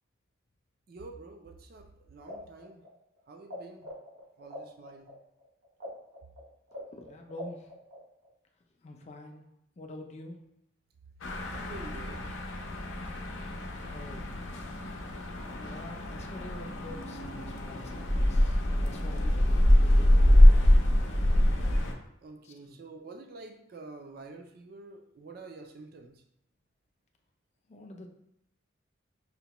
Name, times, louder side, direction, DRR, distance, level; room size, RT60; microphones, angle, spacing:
voice 1, 0.9-2.8 3.3-3.9 4.4-5.1 11.5-12.2 17.9-18.1 18.4-18.5 22.2-26.2, right 3 dB, 50° right, 4 dB, 0.3 m, -47 dB
sound 1, 2.2-3.6 3.8-8.3, left 1 dB, 80° right, 0.9 m, -44 dB
voice 2, 7.0-7.7 8.8-9.4 9.8-10.4 13.9-14.3 15.5-20.4 22.4-22.8 27.7-28.1, left 1 dB, 35° left, 2 dB, 0.4 m, -46 dB
sound 2, 11.2-21.9, left 1 dB, 85° left, 0.6 m, -24 dB
5.5 x 2.1 x 2.9 m, 0.78 s
head